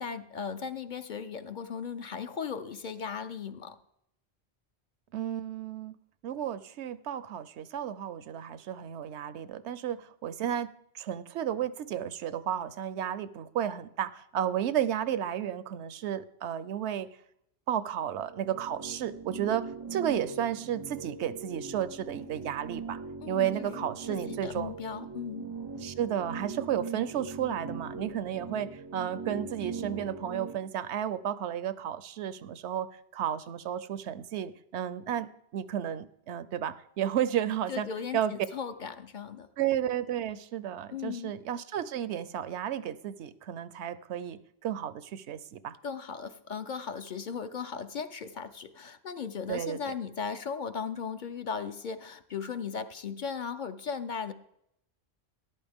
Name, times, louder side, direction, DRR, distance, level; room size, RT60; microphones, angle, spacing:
voice 1, 0.0-3.8 23.2-25.5 37.7-39.5 40.9-41.3 45.8-54.3, left 6 dB, 55° left, 10 dB, 0.7 m, -37 dB
voice 2, 5.1-6.0 6.2-10.7 10.9-17.1 17.7-23.0 23.3-24.7 25.8-37.9 38.1-38.3 39.6-45.7 49.5-49.9, right 10 dB, 85° right, 15 dB, 0.9 m, -33 dB
sound 1, 18.0-30.6, right 4 dB, 40° right, 0.3 m, -41 dB
13.5 x 11.0 x 3.5 m, 0.76 s
omnidirectional pair, 1.1 m